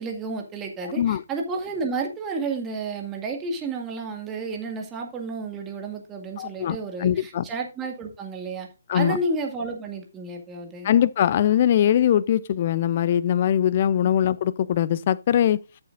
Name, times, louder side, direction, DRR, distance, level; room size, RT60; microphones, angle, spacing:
voice 1, 0.0-8.7 8.9-10.9, right 3 dB, 15° right, 2.0 m, -31 dB
voice 2, 6.4-7.4 8.9-9.2 10.8-15.6, left 10 dB, 40° left, 0.6 m, -21 dB
13.5 x 7.1 x 2.6 m
figure-of-eight pair, 135°, 0 cm